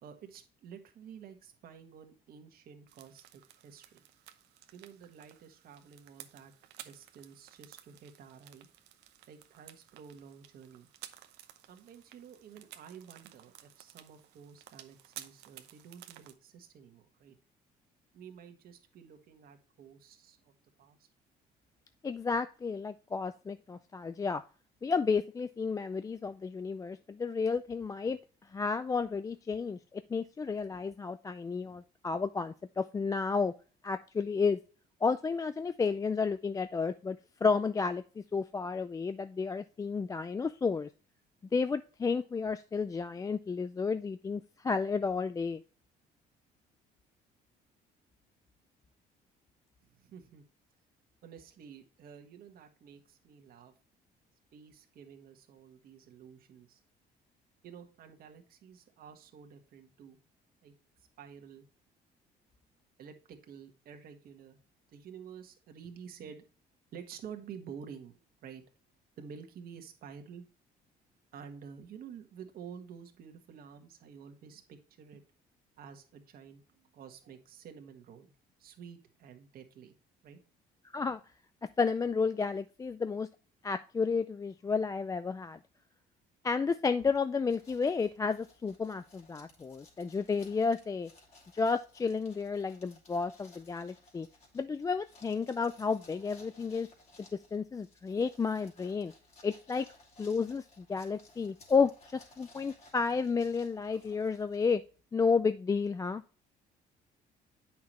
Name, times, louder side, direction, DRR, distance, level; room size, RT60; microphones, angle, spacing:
voice 1, 0.0-4.0 4.7-6.5 6.8-8.7 9.3-10.9 11.7-17.4 18.1-21.1 49.9-50.4 51.2-53.7 54.5-56.8 57.6-60.2 60.6-60.7 61.2-61.7 63.0-64.6 64.9-66.4 66.9-68.6 69.2-70.4 71.3-75.2 75.8-78.3 78.6-79.9 80.2-80.4, right 7 dB, 60° right, 5 dB, 1.6 m, -50 dB
sound 1, 2.9-16.3, right 13 dB, 90° right, 0.8 m, -54 dB
voice 2, 22.0-24.4 24.8-28.2 28.5-33.5 33.8-34.6 35.0-40.9 41.5-45.6 80.9-81.2 81.8-83.3 83.6-85.6 86.4-91.1 91.5-94.3 94.5-96.9 97.5-99.1 99.4-99.9 100.2-104.8 105.1-106.2, left 5 dB, 20° left, 11 dB, 0.4 m, -32 dB
sound 2, 87.5-105.0, left 2 dB, 40° left, 2.9 m, -60 dB
8.5 x 5.9 x 3.0 m, 0.36 s
cardioid pair, 110°, 17 cm